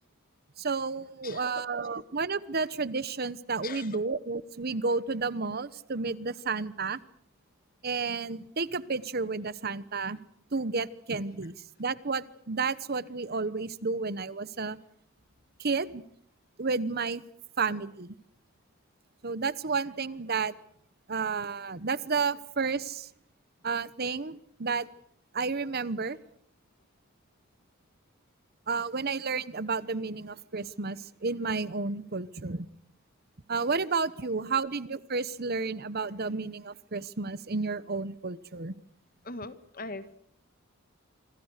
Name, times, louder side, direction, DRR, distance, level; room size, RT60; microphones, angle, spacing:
voice 1, 0.6-7.0 7.8-10.2 10.5-11.5 11.8-14.8 15.6-16.0 16.6-17.2 17.6-18.1 19.2-20.5 21.1-23.1 23.6-24.9 25.3-26.2 28.7-32.7 33.5-38.7, right 4 dB, 50° right, 17 dB, 1.0 m, -31 dB
voice 2, 1.2-1.6 3.6-4.0 39.2-40.2, left 3 dB, 45° left, 12 dB, 1.8 m, -40 dB
27.0 x 25.5 x 6.6 m, 0.65 s
head